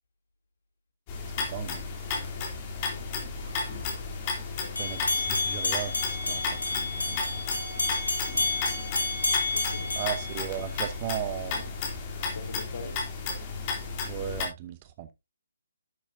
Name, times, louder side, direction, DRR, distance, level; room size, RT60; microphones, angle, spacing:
sound 1, 1.1-14.5, left 4 dB, 25° left, 3.1 m, -33 dB
voice 1, 1.4-1.8 4.8-5.9 6.2-7.2 9.9-11.7 14.0-15.1, right 10 dB, 25° right, 1.0 m, -36 dB
voice 2, 4.4-4.7 9.4-10.0 12.2-13.0, left 4 dB, 50° left, 3.0 m, -43 dB
sound 2, 4.8-11.0, left 3 dB, 80° left, 3.6 m, -30 dB
11.0 x 8.6 x 2.7 m
figure-of-eight pair, 140°, 0 cm